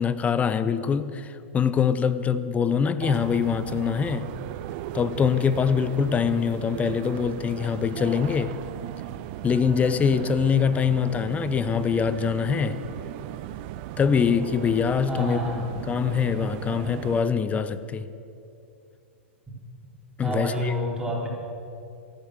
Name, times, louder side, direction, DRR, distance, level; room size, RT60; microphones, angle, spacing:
voice 1, 0.0-4.3 4.9-8.5 9.4-12.8 14.0-18.1 20.2-20.7, left 6 dB, 20° left, 13 dB, 0.8 m, -24 dB
sound 1, 3.0-17.2, right 13 dB, 50° right, 0.6 m, -36 dB
voice 2, 15.1-15.6 20.2-21.3, equal, 10° right, -3 dB, 4.2 m, -28 dB
13.5 x 13.0 x 6.6 m, 2.6 s
hypercardioid pair, 110°, 7 cm